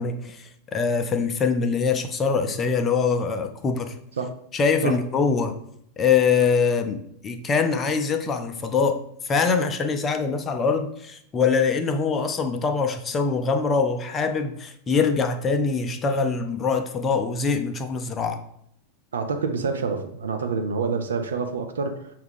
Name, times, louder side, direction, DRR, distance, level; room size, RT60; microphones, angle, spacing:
voice 1, 0.0-3.9 4.5-5.5 6.0-18.4, left 5 dB, 25° left, 0.5 m, -23 dB
voice 2, 19.1-22.1, right 4 dB, 65° right, 0.5 m, -27 dB
6.3 x 2.3 x 3.5 m
figure-of-eight pair, 90°, 0 cm